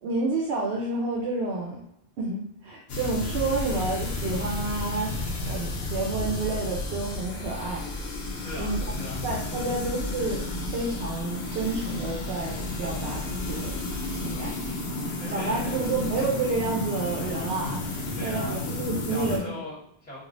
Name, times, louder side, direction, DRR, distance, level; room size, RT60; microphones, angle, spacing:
voice 1, 0.0-1.8 2.2-5.1 5.4-7.9 8.6-8.8 9.2-10.4 10.7-13.8 14.2-14.5 15.3-17.8 18.2-19.4, right 3 dB, 80° right, -2 dB, 0.8 m, -29 dB
sound 1, 2.9-19.4, left 2 dB, 75° left, 0.8 m, -32 dB
voice 2, 8.4-9.3 9.5-9.8 15.2-15.9 18.2-20.2, left 1 dB, 10° left, -10 dB, 1.0 m, -39 dB
3.1 x 2.4 x 2.5 m, 0.75 s
omnidirectional pair, 1.1 m